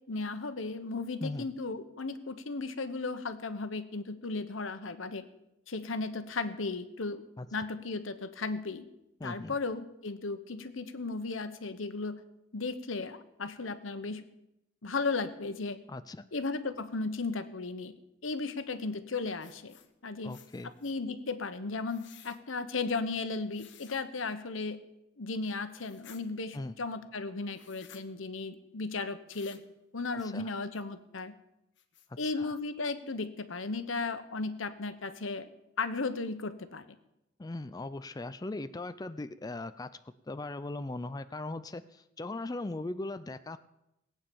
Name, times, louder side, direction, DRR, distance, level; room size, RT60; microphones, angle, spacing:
voice 1, 0.1-5.2 5.7-7.2 7.5-8.9 9.2-12.2 12.5-14.2 14.8-15.8 16.3-17.9 18.2-19.7 20.0-20.3 20.8-24.8 25.2-29.6 29.9-31.3 32.2-35.5 35.8-36.9, left 3 dB, 85° left, 11 dB, 1.1 m, -35 dB
voice 2, 9.2-9.6 15.9-16.2 20.2-20.7 26.5-26.7 30.2-30.5 32.1-32.6 37.4-39.9 40.2-43.6, left 2 dB, 20° left, 11 dB, 0.4 m, -39 dB
sound 1, 19.4-19.9 20.3-21.0 21.9-22.4 23.5-24.0 25.7-26.2 27.5-28.0 29.3-29.7 30.2-30.3 30.7-30.8 31.3-31.4 31.8-32.3, left 9 dB, 65° left, 1.2 m, -56 dB
18.5 x 8.9 x 7.0 m, 0.88 s
head